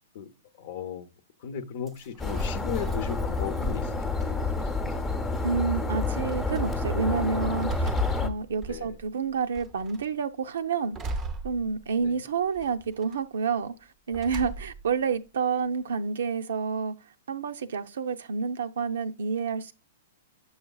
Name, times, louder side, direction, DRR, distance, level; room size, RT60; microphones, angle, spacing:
voice 1, 0.6-1.1 1.4-4.6 5.0-5.1 8.7-9.0 12.0-12.1, left 7 dB, 55° left, 0.7 m, -36 dB
sound 1, 1.9-3.8 4.2-5.0 5.7-5.8 6.3-6.6 7.2-9.1 9.6-10.1 10.9-12.1 12.6-13.2 14.1-14.9, right 3 dB, 20° right, 0.6 m, -37 dB
sound 2, 2.2-8.3, left 3 dB, 10° left, 0.8 m, -29 dB
voice 2, 5.4-7.9 8.2-11.0 11.4-13.7 14.1-17.0 17.3-19.7, right 5 dB, 80° right, 0.6 m, -29 dB
7.0 x 6.3 x 2.3 m
hypercardioid pair, 145°, 0 cm